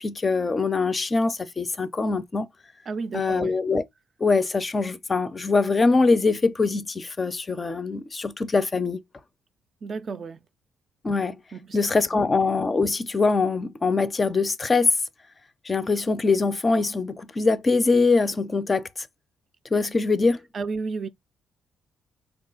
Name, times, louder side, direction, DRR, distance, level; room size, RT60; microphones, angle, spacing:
voice 1, 0.0-2.5 3.1-3.8 4.2-9.0 11.0-11.4 11.7-14.9 15.7-18.9 19.7-20.4, left 3 dB, 30° left, 0.4 m, -23 dB
voice 2, 2.9-3.6 9.8-10.5 11.5-11.8 12.1-12.2 20.5-21.1, right 4 dB, 45° right, 0.4 m, -32 dB
3.4 x 2.4 x 3.8 m
cardioid pair, 90°, 0 cm